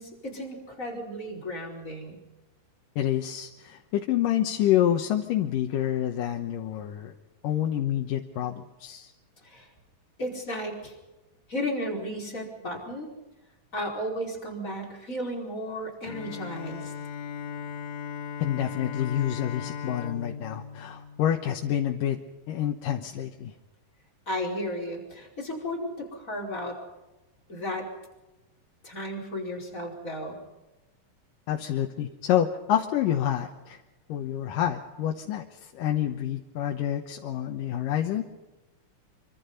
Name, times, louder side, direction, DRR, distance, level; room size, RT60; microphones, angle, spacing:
voice 1, 0.0-2.2 9.4-9.7 10.2-11.0 11.5-13.1 13.7-16.9 24.3-26.8 27.5-27.9 28.8-30.4, equal, 20° left, -1 dB, 5.0 m, -34 dB
voice 2, 3.0-7.1 7.4-9.1 18.4-22.2 22.5-23.5 31.5-33.8 34.1-38.2, left 11 dB, 90° left, 3 dB, 2.8 m, -28 dB
Bowed string instrument, 16.0-21.9, left 7 dB, 65° left, 2.3 m, -38 dB
26.0 x 25.0 x 5.5 m, 1.1 s
omnidirectional pair, 3.8 m